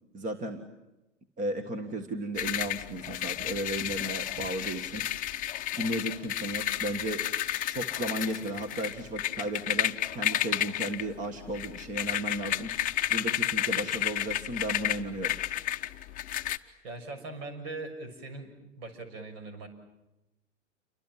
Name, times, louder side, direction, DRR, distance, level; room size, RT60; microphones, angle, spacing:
voice 1, 0.1-0.6 1.4-5.3 5.8-7.3 7.7-15.4, right 1 dB, 20° right, 8 dB, 1.8 m, -35 dB
sound 1, 2.4-16.6, left 13 dB, 20° left, 1.0 m, -32 dB
voice 2, 16.8-18.5 18.8-19.7, right 3 dB, 55° right, 8 dB, 6.8 m, -40 dB
29.0 x 24.5 x 7.6 m, 0.97 s
figure-of-eight pair, 105°, 38 cm